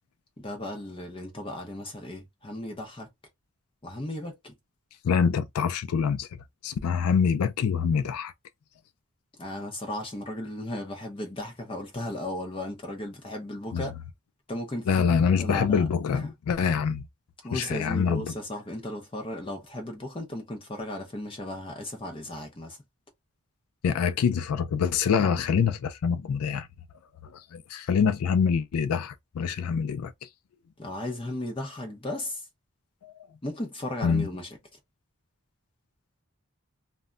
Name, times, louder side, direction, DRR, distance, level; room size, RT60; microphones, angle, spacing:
voice 1, 0.4-3.1 3.8-4.5 9.3-13.9 14.5-15.0 15.4-15.9 16.1-16.3 17.4-22.8 25.2-25.3 30.8-32.5 33.4-34.6, left 1 dB, 25° left, 0.6 m, -35 dB
voice 2, 5.0-6.3 6.6-8.3 13.7-13.8 14.9-17.1 17.5-18.2 23.8-26.7 27.2-30.3 33.0-33.1 34.0-34.3, left 6 dB, 85° left, 0.4 m, -25 dB
2.2 x 2.1 x 3.6 m
head